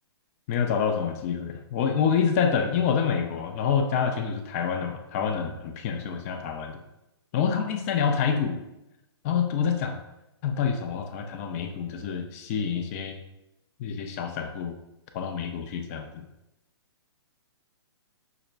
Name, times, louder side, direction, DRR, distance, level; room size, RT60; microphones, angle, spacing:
voice 1, 0.5-6.8 7.3-8.6 9.2-10.0 10.4-13.2 13.8-14.8 15.1-16.3, left 7 dB, 35° left, 5 dB, 0.4 m, -27 dB
5.7 x 2.1 x 2.4 m, 0.92 s
hypercardioid pair, 135°, 14 cm